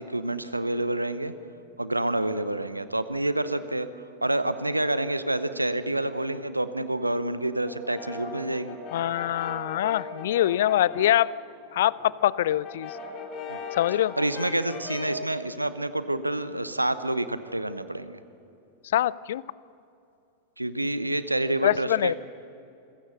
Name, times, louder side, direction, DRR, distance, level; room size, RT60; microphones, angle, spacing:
voice 1, 0.0-1.3 1.8-3.9 4.2-8.8 13.5-13.6 14.2-18.2 20.6-22.1, right 1 dB, 85° right, 13 dB, 0.9 m, -28 dB
Brass instrument, 7.7-11.3 11.7-15.3, left 3 dB, 35° left, 3.1 m, -38 dB
voice 2, 8.9-11.3 11.7-13.0 13.7-14.1 18.9-19.4 21.6-22.1, left 12 dB, 60° left, 22 dB, 0.4 m, -24 dB
27.5 x 16.0 x 6.6 m, 2.8 s
figure-of-eight pair, 90°, 0 cm